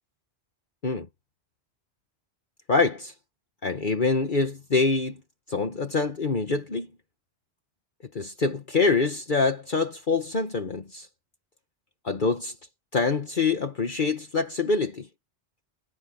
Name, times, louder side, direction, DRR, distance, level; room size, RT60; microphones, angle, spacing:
voice 1, 2.7-3.1 3.6-5.2 5.5-6.9 8.1-11.1 12.0-12.5 12.9-15.1, left 4 dB, 50° left, 1.5 m, -25 dB
omnidirectional pair, 1.1 m